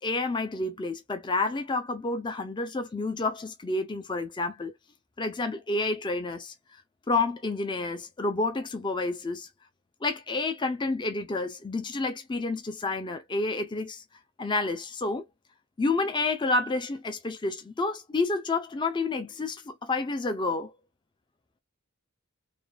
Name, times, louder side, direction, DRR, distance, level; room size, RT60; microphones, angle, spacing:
voice 1, 0.0-4.7 5.2-6.5 7.1-9.5 10.0-14.0 14.4-15.2 15.8-20.7, left 3 dB, 20° left, 0.4 m, -29 dB
3.3 x 2.3 x 2.3 m
head